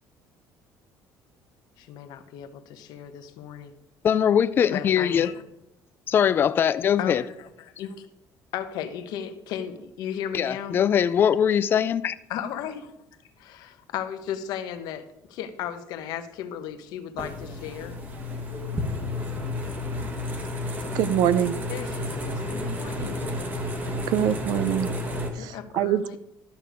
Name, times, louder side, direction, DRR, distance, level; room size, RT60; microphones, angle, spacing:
voice 1, 1.8-3.7 4.7-5.4 7.0-8.1 8.5-10.8 12.3-13.0 13.4-18.0 21.7-23.3 25.3-26.2, left 9 dB, 70° left, 1.0 m, -35 dB
voice 2, 4.0-5.3 6.1-7.2 10.3-12.1, left 8 dB, 30° left, 0.4 m, -21 dB
sound 1, 17.2-25.3, left 1 dB, 25° right, 1.3 m, -31 dB
voice 3, 20.9-21.6 24.1-24.9 25.3-26.0, right 10 dB, 70° right, 0.5 m, -24 dB
12.0 x 6.6 x 5.1 m
cardioid pair, 160°, 7 cm